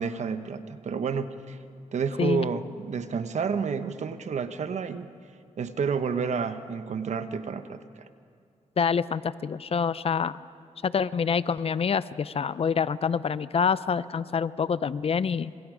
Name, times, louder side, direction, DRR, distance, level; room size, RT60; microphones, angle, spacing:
voice 1, 0.0-1.6 1.9-5.1 5.6-8.0, right 5 dB, 65° right, 10 dB, 1.1 m, -30 dB
voice 2, 2.2-2.5 8.8-10.4 10.8-15.5, left 6 dB, 50° left, 16 dB, 0.6 m, -26 dB
27.5 x 26.5 x 5.1 m, 2.4 s
cardioid pair, 85°, 13 cm